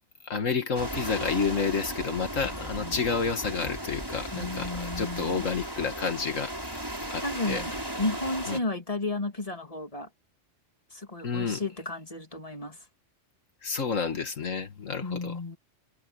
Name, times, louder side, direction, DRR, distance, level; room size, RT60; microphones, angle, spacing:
voice 1, 0.2-6.5 7.1-7.6 8.5-8.6 11.2-11.6 13.6-15.4, left 5 dB, 80° left, 2.1 m, -30 dB
sound 1, 0.7-8.6, right 1 dB, 15° right, 6.4 m, -36 dB
voice 2, 2.5-3.0 4.3-5.4 7.2-10.1 10.9-12.8 15.0-15.6, left 2 dB, 25° left, 3.2 m, -33 dB
omnidirectional pair, 1.3 m